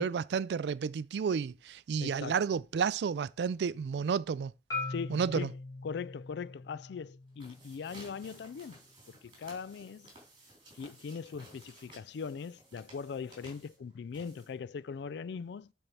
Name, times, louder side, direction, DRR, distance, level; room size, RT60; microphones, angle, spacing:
voice 1, 0.0-4.5 5.1-5.5, right 6 dB, 70° right, 0.3 m, -31 dB
voice 2, 2.0-2.4 4.9-5.5 5.8-8.8 9.1-10.1 10.8-15.7, left 6 dB, 70° left, 0.3 m, -40 dB
Marimba xylophone, 4.7-8.9, left 3 dB, 20° left, 2.3 m, -42 dB
sound 1, 7.2-14.8, right 1 dB, 25° right, 3.8 m, -56 dB
8.9 x 4.4 x 5.3 m
head